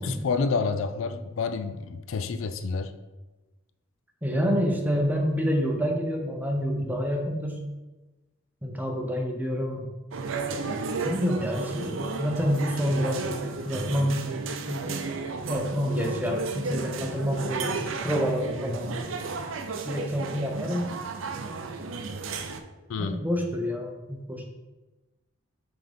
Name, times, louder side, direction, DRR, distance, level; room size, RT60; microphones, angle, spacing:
voice 1, 0.0-2.9 22.9-23.2, left 4 dB, 75° left, 0.4 m, -29 dB
voice 2, 4.2-7.6 8.6-9.9 11.0-14.2 14.7-15.0 15.5-18.8 19.8-20.9 23.0-24.4, equal, 10° right, 0.8 m, -28 dB
sound 1, 10.1-22.6, right 4 dB, 75° right, 0.5 m, -33 dB
5.8 x 3.8 x 5.2 m
head